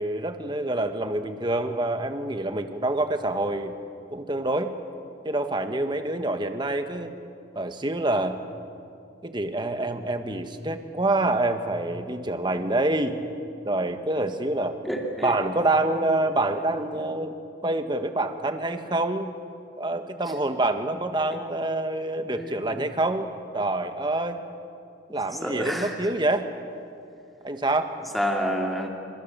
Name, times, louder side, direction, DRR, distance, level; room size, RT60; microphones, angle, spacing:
voice 1, 0.0-3.7 4.1-4.7 5.2-7.1 7.5-8.4 9.2-13.2 13.6-14.8 15.2-17.3 17.6-19.3 19.8-23.3 23.5-24.4 25.1-26.5 27.4-28.0, right 2 dB, 25° right, 7 dB, 1.6 m, -26 dB
voice 2, 14.8-15.3 22.3-22.8 25.4-26.1 28.1-28.9, equal, ahead, 0 dB, 3.3 m, -29 dB
27.5 x 27.5 x 7.5 m, 2.5 s
head